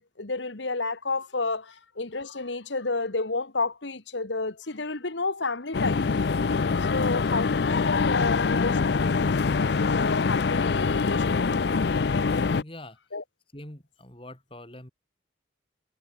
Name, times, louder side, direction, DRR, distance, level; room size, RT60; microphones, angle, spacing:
voice 1, 0.0-6.1 6.9-9.4 9.8-11.9 13.1-13.2, left 3 dB, 75° left, 1.7 m, -31 dB
sound 1, 5.7-12.6, left 4 dB, 60° left, 0.5 m, -24 dB
voice 2, 12.5-13.2 13.5-14.9, left 1 dB, 30° left, 4.1 m, -44 dB
head